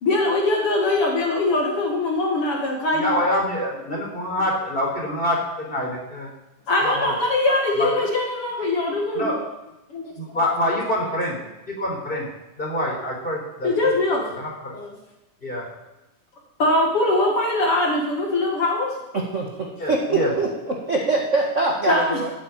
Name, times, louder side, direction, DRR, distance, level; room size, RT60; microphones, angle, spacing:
voice 1, 0.0-3.2 6.7-9.4 9.9-10.1 13.6-14.3 14.7-15.0 16.6-19.0 21.9-22.2, left 2 dB, 55° left, 0 dB, 2.2 m, -22 dB
voice 2, 2.9-6.3 6.8-7.1 7.8-8.1 9.1-9.4 10.2-11.4 11.8-12.2 12.6-13.7 14.3-14.7 15.4-15.7 19.8-20.3, left 1 dB, 15° left, -2 dB, 4.1 m, -25 dB
voice 3, 19.1-20.0 20.4-20.5 20.9-22.3, right 3 dB, 30° right, -2 dB, 1.5 m, -23 dB
13.5 x 8.5 x 8.9 m, 0.97 s
omnidirectional pair, 3.4 m